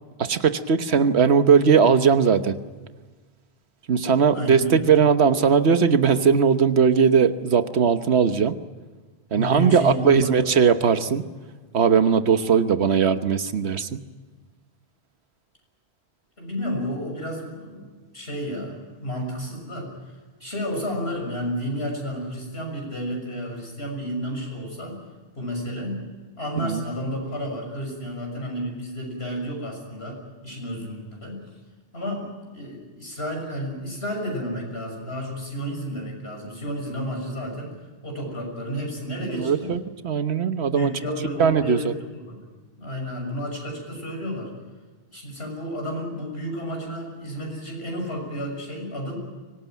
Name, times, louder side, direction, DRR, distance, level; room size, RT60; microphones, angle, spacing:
voice 1, 0.2-2.5 3.9-8.6 9.3-11.2 11.7-14.0 26.6-26.8 39.2-40.9 41.4-41.9, right 6 dB, 85° right, 10 dB, 1.4 m, -19 dB
voice 2, 4.3-4.7 9.3-10.3 16.4-17.9 18.1-19.9 20.4-25.0 25.3-26.0 26.4-31.4 31.9-37.7 38.0-39.7 40.7-41.9 42.3-42.4 42.8-44.5 45.1-49.1, equal, 75° left, 1 dB, 6.9 m, -31 dB
24.0 x 19.0 x 9.3 m, 1.4 s
omnidirectional pair, 1.1 m